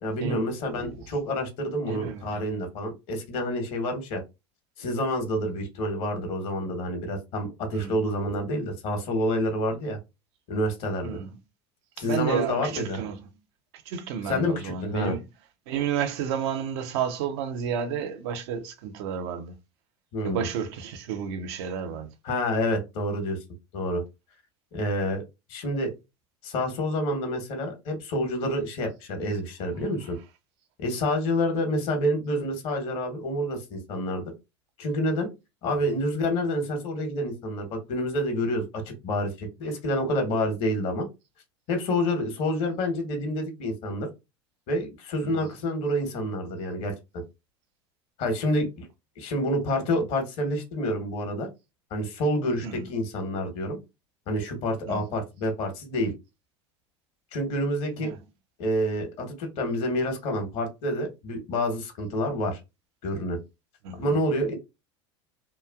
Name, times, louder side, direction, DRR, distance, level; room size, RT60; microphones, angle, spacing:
voice 1, 0.0-4.2 4.8-10.0 10.5-11.2 12.0-13.0 14.2-15.2 20.1-20.5 22.2-23.4 23.7-24.0 24.7-25.2 25.5-25.9 26.4-30.2 30.8-34.2 34.8-35.3 35.6-38.7 39.0-41.0 41.7-44.1 44.7-46.9 48.2-48.9 49.2-51.5 51.9-53.8 54.3-56.1 57.3-58.1 58.6-62.6 63.0-63.4 64.0-64.6, left 1 dB, 60° left, 1.1 m, -28 dB
voice 2, 1.9-2.2 7.7-7.9 11.0-11.3 12.0-13.2 13.9-15.2 15.7-19.5 20.2-22.1 45.2-45.5 52.6-52.8 54.9-55.0 58.0-58.2 63.8-64.2, right 7 dB, 65° right, 0.6 m, -31 dB
3.0 x 2.4 x 2.3 m
hypercardioid pair, 80°, 15 cm